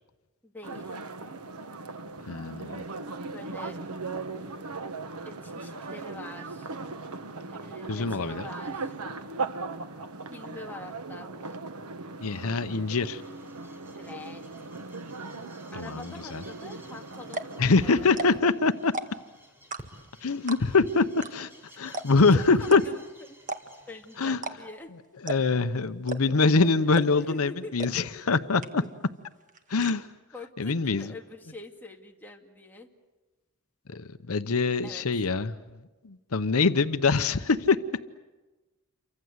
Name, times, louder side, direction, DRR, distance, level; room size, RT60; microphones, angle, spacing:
voice 1, 0.4-1.0 3.3-3.8 5.2-6.7 7.5-9.0 10.3-11.7 13.9-14.4 15.7-18.1 21.8-23.0 23.3-23.4 23.9-24.9 26.5-26.6 27.2-28.4 30.3-32.9 34.8-35.0, left 2 dB, 10° left, 1 dB, 2.3 m, -45 dB
sound 1, 0.6-18.4, right 3 dB, 90° right, 1.4 m, -38 dB
voice 2, 2.3-2.9 7.9-8.5 12.2-13.2 15.7-16.4 17.6-18.9 20.2-21.5 21.8-22.8 24.2-24.4 25.2-28.8 29.7-30.1 30.6-31.1 33.9-37.8, left 4 dB, 70° left, 10 dB, 0.8 m, -24 dB
sound 2, 13.0-24.3, equal, 10° right, 4.1 m, -54 dB
sound 3, 16.8-16.9 17.2-17.6 18.1-18.5 18.8-19.3 19.7-20.1 20.5-20.8 21.2-21.3 21.6-21.7 21.9-22.3 22.7-22.8 23.4-23.9 24.3-24.6 24.8-24.9 25.3-25.6 26.1-26.5 26.9-27.3 27.8-27.9 28.2-28.3 28.6-29.0 29.3-29.9, right 3 dB, 35° right, 1.8 m, -34 dB
28.5 x 24.5 x 8.1 m, 1.2 s
head